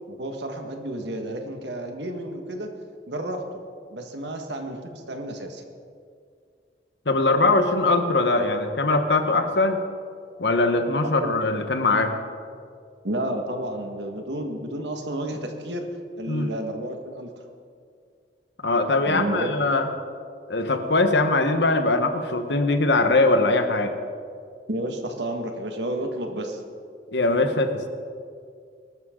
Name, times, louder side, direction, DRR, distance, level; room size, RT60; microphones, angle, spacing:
voice 1, 0.1-2.7 3.1-3.4 3.9-5.6 11.2-11.3 13.0-15.9 16.2-17.3 19.1-19.5 24.7-26.6, right 1 dB, 85° right, 4 dB, 1.8 m, -31 dB
voice 2, 7.0-9.8 10.4-12.2 16.3-16.5 18.6-19.9 20.5-23.9 27.1-27.9, left 2 dB, 80° left, 7 dB, 1.3 m, -21 dB
21.0 x 12.5 x 3.9 m, 2.2 s
head